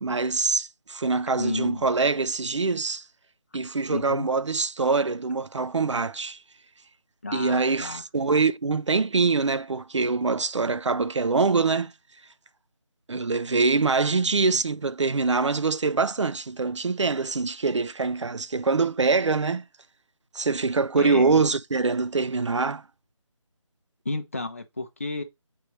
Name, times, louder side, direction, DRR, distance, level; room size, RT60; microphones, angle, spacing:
voice 1, 0.0-3.0 3.5-6.4 7.3-11.9 13.1-19.6 20.3-22.8, right 4 dB, 65° right, 0.6 m, -24 dB
voice 2, 1.3-1.8 3.9-4.3 7.2-8.0 21.0-21.4 24.0-25.2, left 2 dB, 25° left, 0.7 m, -31 dB
8.3 x 4.4 x 3.1 m
figure-of-eight pair, 175°, 17 cm